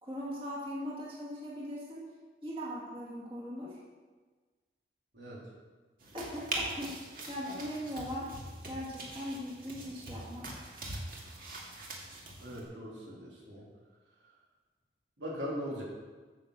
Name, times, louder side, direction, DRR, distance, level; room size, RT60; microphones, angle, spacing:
voice 1, 0.0-2.0 2.4-3.8 6.1-7.0 7.3-8.3 8.6-10.6 15.2-15.3, equal, 30° right, -6 dB, 2.2 m, -40 dB
sound 1, 6.0-12.6, right 2 dB, 50° right, 2.1 m, -42 dB
voice 2, 12.4-13.6 15.2-15.8, equal, 85° right, -4 dB, 3.5 m, -40 dB
9.4 x 7.6 x 6.7 m, 1.4 s
head